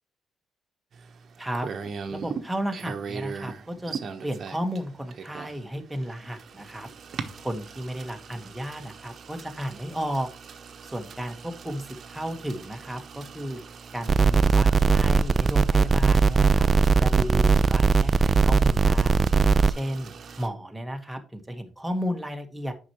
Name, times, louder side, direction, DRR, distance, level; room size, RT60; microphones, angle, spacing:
sound 1, 0.9-20.5, right 6 dB, 55° right, 1.0 m, -41 dB
voice 1, 2.1-3.9 4.2-6.9 7.4-10.3 10.8-13.6 13.9-16.7 17.0-19.3 19.6-22.7, equal, 5° right, 4 dB, 1.5 m, -33 dB
sound 2, 14.1-19.7, right 4 dB, 40° right, 0.4 m, -19 dB
8.6 x 5.8 x 3.1 m, 0.35 s
cardioid pair, 90°, 0 cm